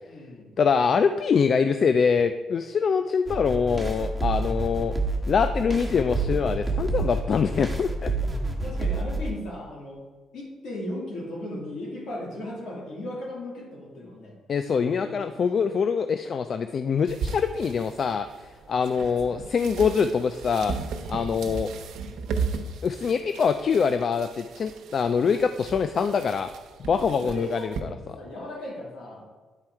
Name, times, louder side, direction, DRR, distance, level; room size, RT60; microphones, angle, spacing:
voice 1, 0.0-0.5 8.6-10.0 10.3-14.4 15.0-15.6 27.0-29.3, left 1 dB, 75° left, -3 dB, 2.6 m, -37 dB
voice 2, 0.6-4.9 5.3-8.1 14.5-18.3 18.7-20.8 21.1-21.7 22.8-26.5 26.9-27.9, left 6 dB, 50° left, 10 dB, 0.3 m, -24 dB
sound 1, 3.3-9.3, right 2 dB, 5° right, 1.4 m, -28 dB
sound 2, 17.1-27.8, right 5 dB, 75° right, 0.8 m, -36 dB
9.9 x 4.3 x 4.7 m, 1.3 s
cardioid pair, 90°, 0 cm